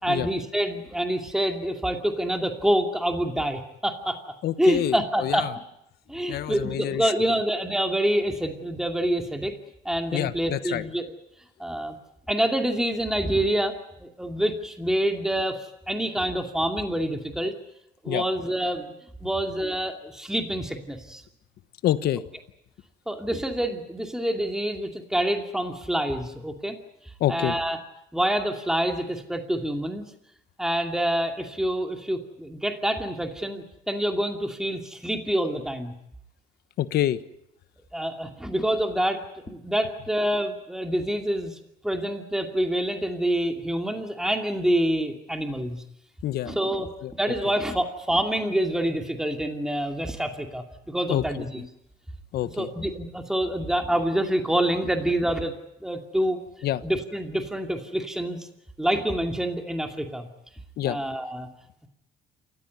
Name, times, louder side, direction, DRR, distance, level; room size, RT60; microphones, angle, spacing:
voice 1, 0.0-4.2 4.6-5.5 6.1-9.5 9.8-11.1 11.6-12.0 12.3-13.7 14.0-17.5 18.0-18.9 19.2-21.2 23.1-26.8 27.3-27.8 28.1-30.0 30.6-35.9 37.9-39.2 39.5-45.8 46.5-51.6 52.6-55.5 55.8-56.4 56.8-58.5 58.8-60.3 60.9-61.5, right 1 dB, 5° right, 4 dB, 2.5 m, -27 dB
voice 2, 4.4-5.5 6.3-7.4 10.1-10.8 18.1-18.2 21.8-22.2 27.2-27.6 36.8-37.2 46.2-46.6 47.0-47.1 51.1-51.4 52.3-52.7 56.6-56.8 60.8-61.0, left 12 dB, 70° left, 13 dB, 1.3 m, -27 dB
28.0 x 15.0 x 9.7 m, 0.80 s
cardioid pair, 110°, 17 cm